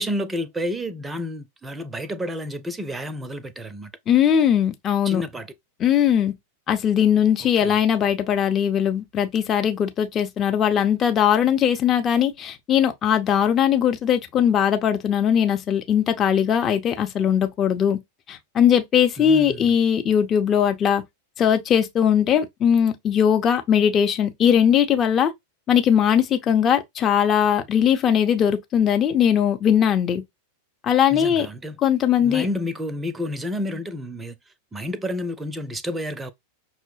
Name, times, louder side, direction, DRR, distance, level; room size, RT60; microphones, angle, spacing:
voice 1, 0.0-3.9 5.1-5.5 7.6-7.7 19.2-19.6 31.1-31.7 32.2-34.3 34.7-36.3, left 1 dB, 10° right, 0.6 m, -30 dB
voice 2, 4.1-5.2 5.8-6.3 6.7-18.0 18.3-21.0 21.4-25.3 25.7-30.2 30.8-31.5 31.8-32.5, left 9 dB, 25° left, 0.7 m, -20 dB
5.8 x 2.1 x 3.2 m
figure-of-eight pair, 90°, 0 cm